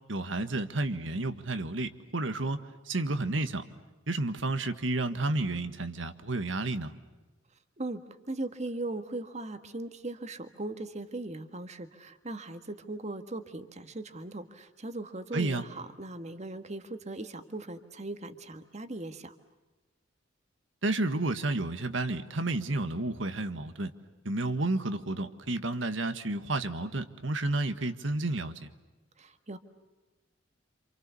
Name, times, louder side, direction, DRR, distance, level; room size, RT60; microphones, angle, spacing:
voice 1, 0.1-2.6 2.9-3.7 4.1-6.9 15.3-15.6 20.8-23.9 24.2-28.5, right 2 dB, 80° right, 9 dB, 1.6 m, -31 dB
voice 2, 8.3-19.3 29.2-29.6, right 2 dB, 35° right, 8 dB, 1.7 m, -39 dB
28.0 x 27.5 x 7.0 m, 1.2 s
head